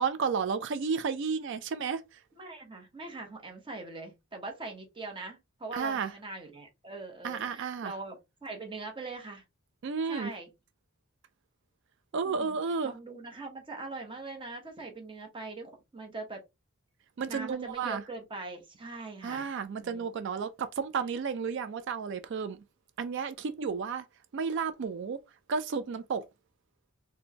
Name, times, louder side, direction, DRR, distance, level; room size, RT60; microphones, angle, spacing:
voice 1, 0.0-2.2 5.7-6.1 7.2-7.9 9.8-10.3 12.1-12.9 17.2-18.0 19.2-22.6 23.0-24.0 24.3-25.2 25.5-26.2, right 5 dB, 55° right, 0.3 m, -32 dB
voice 2, 2.4-9.4 10.1-10.5 12.2-12.6 12.8-16.4 17.3-19.5 19.8-20.1, right 3 dB, 25° right, 0.8 m, -42 dB
4.3 x 2.1 x 2.8 m
head